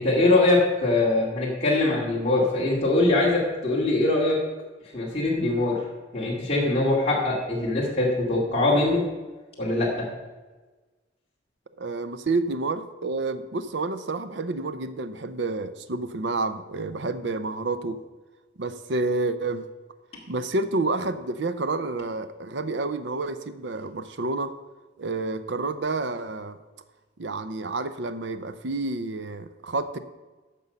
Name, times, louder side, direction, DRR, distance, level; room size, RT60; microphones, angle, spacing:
voice 1, 0.0-4.4 4.9-5.8 6.1-9.0 9.6-10.1, left 2 dB, 30° left, -5 dB, 2.3 m, -22 dB
voice 2, 11.8-18.0 18.6-19.7 20.3-24.6 25.0-26.6 27.2-30.0, right 3 dB, 65° right, 11 dB, 0.7 m, -29 dB
14.0 x 5.4 x 5.4 m, 1.2 s
head